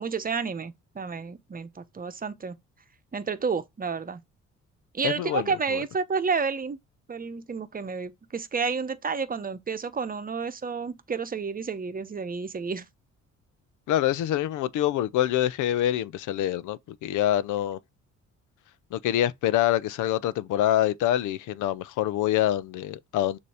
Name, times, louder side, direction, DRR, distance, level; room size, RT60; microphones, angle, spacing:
voice 1, 0.0-2.6 3.1-4.2 4.9-6.8 7.1-12.9, right 5 dB, 30° right, 0.9 m, -30 dB
voice 2, 5.0-5.8 13.9-17.8 18.9-23.4, left 12 dB, 85° left, 0.6 m, -26 dB
6.8 x 2.8 x 4.9 m
cardioid pair, 90°, 30 cm